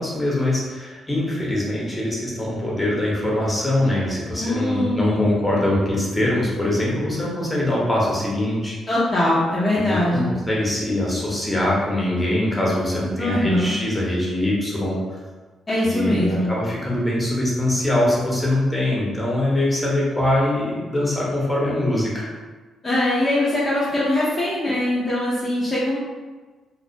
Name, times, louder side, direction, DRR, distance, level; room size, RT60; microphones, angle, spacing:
voice 1, 0.0-8.7 9.8-15.2 15.8-22.3, left 1 dB, 10° left, -5 dB, 0.9 m, -23 dB
voice 2, 4.4-5.2 8.9-10.3 13.2-13.7 15.7-16.5 22.8-26.0, left 1 dB, 30° left, -8 dB, 0.6 m, -22 dB
2.4 x 2.1 x 2.6 m, 1.3 s
supercardioid pair, 60°, 0 cm